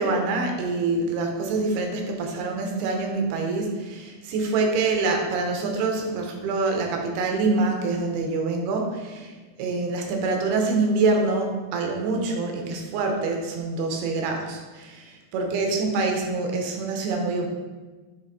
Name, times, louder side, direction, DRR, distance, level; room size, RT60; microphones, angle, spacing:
voice 1, 0.0-9.3 9.6-17.5, right 3 dB, 85° right, 2 dB, 2.9 m, -25 dB
10.5 x 3.6 x 4.1 m, 1.3 s
omnidirectional pair, 4.5 m